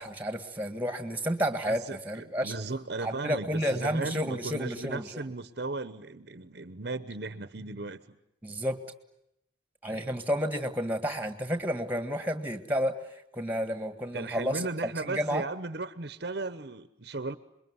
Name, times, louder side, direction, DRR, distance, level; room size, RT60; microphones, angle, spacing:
voice 1, 0.0-2.5 3.0-5.2 8.4-8.8 9.8-15.4, equal, 10° right, 8 dB, 1.7 m, -31 dB
voice 2, 1.7-8.2 9.9-10.2 14.1-17.4, right 3 dB, 55° right, 12 dB, 1.0 m, -36 dB
27.5 x 22.0 x 9.6 m, 0.80 s
head